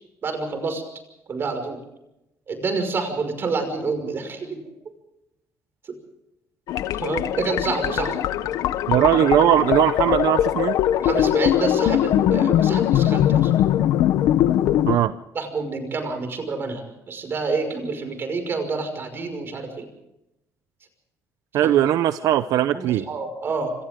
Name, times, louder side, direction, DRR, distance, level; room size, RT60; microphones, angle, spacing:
voice 1, 0.2-0.8 1.3-1.8 2.5-4.6 7.0-8.2 11.0-13.5 15.3-19.9 21.6-21.7 22.7-23.7, right 4 dB, 40° right, 7 dB, 5.7 m, -28 dB
sound 1, 6.7-15.0, left 12 dB, 80° left, 0.9 m, -21 dB
voice 2, 8.9-10.8 14.9-15.1 21.5-23.0, right 12 dB, 80° right, 12 dB, 0.7 m, -19 dB
27.5 x 26.0 x 3.7 m, 0.87 s
cardioid pair, 140°, 6 cm